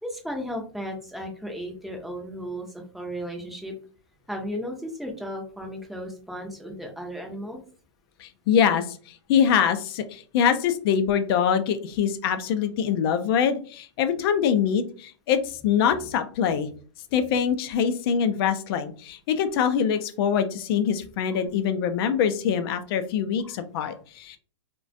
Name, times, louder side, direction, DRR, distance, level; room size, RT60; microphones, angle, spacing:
voice 1, 0.0-3.7 4.3-7.6 21.3-21.4 23.4-23.5 23.8-24.0, equal, ahead, 1 dB, 0.5 m, -35 dB
voice 2, 8.2-16.7 17.1-24.4, left 8 dB, 50° left, 9 dB, 0.4 m, -24 dB
2.3 x 2.2 x 2.5 m, 0.42 s
hypercardioid pair, 120°, 16 cm